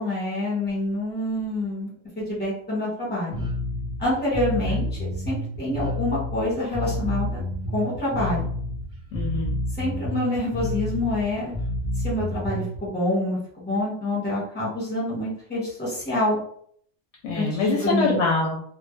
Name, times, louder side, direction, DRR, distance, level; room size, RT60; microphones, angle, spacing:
voice 1, 0.0-3.4 4.0-7.4 7.7-8.4 9.8-11.5 12.0-16.4 17.3-18.2, left 1 dB, 10° left, -6 dB, 1.0 m, -27 dB
Bass guitar, 3.3-12.8, left 1 dB, 35° right, 0.6 m, -29 dB
voice 2, 9.1-9.5 17.2-18.6, left 3 dB, 70° left, -2 dB, 0.8 m, -24 dB
2.2 x 2.1 x 3.1 m, 0.62 s
omnidirectional pair, 1.3 m